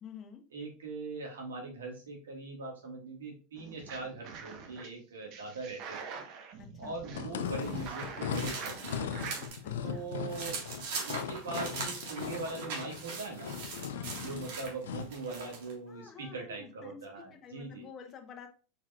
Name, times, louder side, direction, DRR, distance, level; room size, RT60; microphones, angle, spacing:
voice 1, 0.0-0.4 6.6-7.0 9.6-10.1 13.9-14.3 15.9-18.5, left 7 dB, 35° left, 4 dB, 0.9 m, -49 dB
voice 2, 0.5-6.2 6.8-9.2 9.8-10.6 11.0-13.6 14.2-17.9, right 3 dB, 90° right, 0 dB, 1.7 m, -41 dB
sound 1, 3.6-4.9 5.3-9.5, right 6 dB, 50° right, 1.0 m, -45 dB
sound 2, 7.1-15.2, left 7 dB, 80° left, 0.5 m, -38 dB
sound 3, 7.4-9.6 10.0-15.7, right 4 dB, 70° right, 1.6 m, -41 dB
4.6 x 4.4 x 2.4 m, 0.36 s
hypercardioid pair, 105°, 0 cm